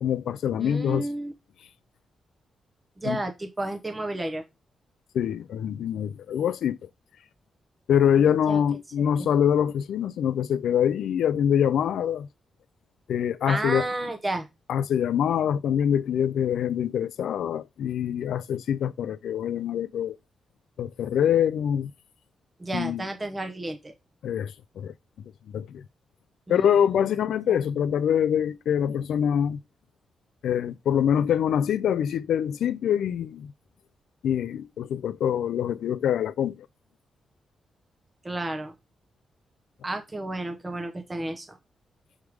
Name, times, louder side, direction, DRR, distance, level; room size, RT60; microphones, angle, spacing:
voice 1, 0.0-1.1 3.0-3.2 5.1-6.8 7.9-12.3 13.1-13.9 14.7-20.2 20.8-21.9 22.7-23.1 24.2-24.9 25.5-25.8 26.5-29.6 30.4-33.5 34.2-36.7, left 9 dB, 85° left, 0.5 m, -25 dB
voice 2, 0.6-1.3 3.0-4.4 8.3-8.6 9.0-9.3 13.5-14.5 22.6-23.9 26.5-27.1 27.5-27.6 38.2-38.7 39.8-41.6, right 2 dB, 15° right, 0.8 m, -32 dB
6.3 x 3.6 x 4.7 m
wide cardioid pair, 170°, 0 cm